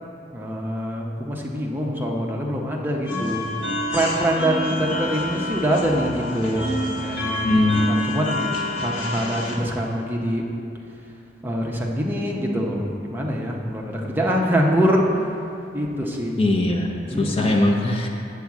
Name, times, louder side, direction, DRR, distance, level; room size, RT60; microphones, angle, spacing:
voice 1, 0.3-3.4 3.9-8.5 8.8-10.4 11.4-12.8 13.1-15.0 15.7-16.4 17.1-17.6, equal, 10° right, -2 dB, 0.7 m, -24 dB
sound 1, 3.1-9.6, left 1 dB, 75° left, 1.2 m, -28 dB
voice 2, 7.4-7.9 16.4-18.1, left 1 dB, 30° left, 1 dB, 0.6 m, -20 dB
7.8 x 4.7 x 7.2 m, 2.7 s
head